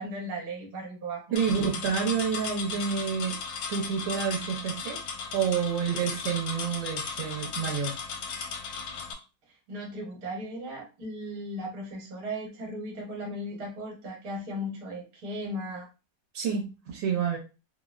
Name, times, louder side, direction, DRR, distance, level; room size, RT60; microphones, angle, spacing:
voice 1, 0.0-1.4 9.5-15.9, equal, 55° right, -1 dB, 1.4 m, -37 dB
voice 2, 1.3-3.4 3.7-5.0 5.3-7.9 16.3-17.4, right 7 dB, 80° right, -1 dB, 1.4 m, -29 dB
sound 1, 1.4-9.1, left 5 dB, 85° left, 1.3 m, -36 dB
3.8 x 2.0 x 2.3 m, 0.31 s
omnidirectional pair, 2.0 m